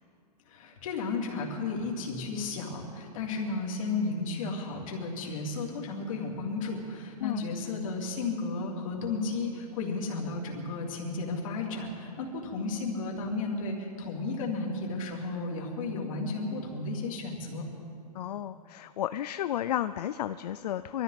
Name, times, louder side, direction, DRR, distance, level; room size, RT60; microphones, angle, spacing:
voice 1, 0.5-17.6, left 3 dB, 50° left, -2 dB, 3.2 m, -33 dB
voice 2, 18.1-21.0, left 12 dB, 75° left, 12 dB, 0.5 m, -32 dB
23.0 x 13.5 x 4.2 m, 2.6 s
hypercardioid pair, 165°, 21 cm